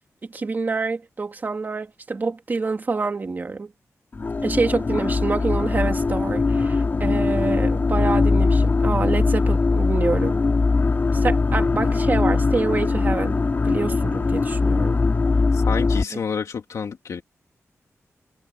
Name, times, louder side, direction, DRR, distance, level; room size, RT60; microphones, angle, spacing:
voice 1, 0.3-3.7 4.4-10.4 11.1-15.0 16.1-16.2, right 4 dB, 35° right, 2.5 m, -27 dB
sound 1, 4.1-16.0, left 3 dB, 40° left, 3.1 m, -21 dB
voice 2, 15.5-17.2, left 6 dB, 80° left, 2.5 m, -29 dB
wide cardioid pair, 155°, 5 cm